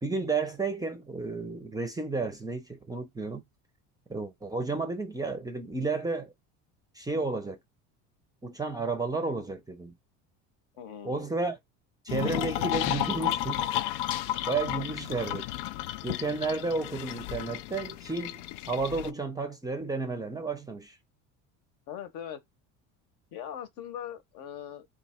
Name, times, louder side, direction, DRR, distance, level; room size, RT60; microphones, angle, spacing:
voice 1, 0.0-3.4 4.1-6.3 6.9-7.6 8.4-9.9 11.0-11.6 12.0-13.6 14.5-15.4 16.0-18.4 18.7-21.0, right 3 dB, 10° right, 0.5 m, -32 dB
voice 2, 10.8-11.2 14.7-14.8 21.9-22.4 23.3-24.9, left 9 dB, 60° left, 1.0 m, -40 dB
sound 1, 12.1-19.1, left 14 dB, 85° left, 0.5 m, -32 dB
3.0 x 2.5 x 4.2 m
cardioid pair, 135°, 35 cm